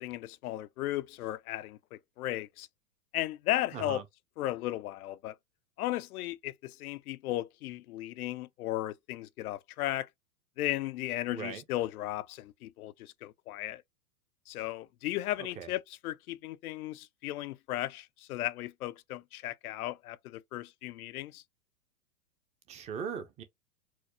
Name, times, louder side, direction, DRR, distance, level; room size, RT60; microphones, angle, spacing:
voice 1, 0.0-2.7 3.1-4.0 4.4-5.3 5.8-10.1 10.6-13.8 14.5-21.4, left 15 dB, 75° left, 0.5 m, -35 dB
voice 2, 3.7-4.0 11.3-11.6 15.4-15.7 22.7-23.4, right 7 dB, 15° right, 0.4 m, -39 dB
4.5 x 2.0 x 2.7 m
hypercardioid pair, 125°, 44 cm